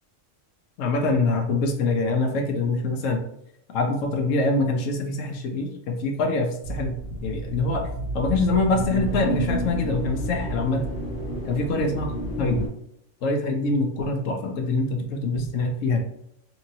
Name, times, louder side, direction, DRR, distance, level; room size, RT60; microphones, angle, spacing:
voice 1, 0.8-3.2 3.7-6.9 7.2-7.9 8.1-10.8 11.5-12.1 12.4-12.7 13.2-16.0, left 3 dB, 85° left, 3 dB, 1.0 m, -24 dB
sound 1, 6.6-12.7, right 1 dB, 70° left, 1.3 m, -30 dB
2.8 x 2.6 x 2.7 m, 0.73 s
omnidirectional pair, 1.3 m